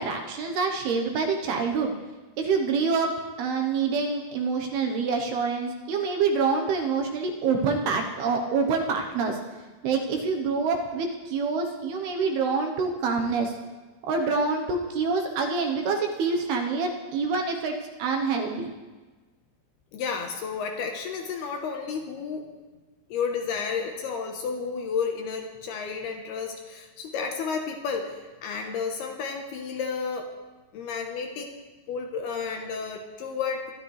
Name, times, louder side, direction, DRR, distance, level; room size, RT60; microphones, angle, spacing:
voice 1, 0.0-1.9 2.4-3.1 3.4-9.4 9.8-13.6 14.0-18.7, right 4 dB, 70° right, 2 dB, 2.7 m, -26 dB
voice 2, 19.9-22.5 23.1-30.3 30.7-31.5 31.9-33.7, left 5 dB, 70° left, 3 dB, 2.7 m, -32 dB
23.5 x 12.0 x 3.3 m, 1.3 s
omnidirectional pair, 5.3 m